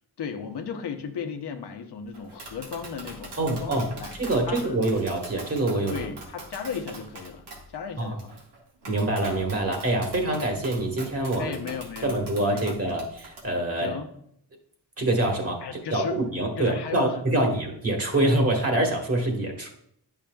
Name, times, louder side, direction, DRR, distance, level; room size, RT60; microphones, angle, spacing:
voice 1, 0.2-4.1 4.5-4.8 5.9-7.5 7.7-8.4 8.9-9.1 10.1-10.3 11.4-12.2 12.5-12.9 13.8-14.1 15.6-16.2 16.6-17.5, left 6 dB, 80° left, 5 dB, 0.9 m, -35 dB
Tap, 2.1-13.4, right 2 dB, 85° right, 1.7 m, -43 dB
voice 2, 3.4-3.9 4.2-6.1 8.0-8.1 8.9-11.6 12.0-14.0 15.0-15.6 15.9-19.7, right 1 dB, 35° right, 1 dB, 1.5 m, -25 dB
10.0 x 5.7 x 2.3 m, 0.68 s
wide cardioid pair, 130°, 39 cm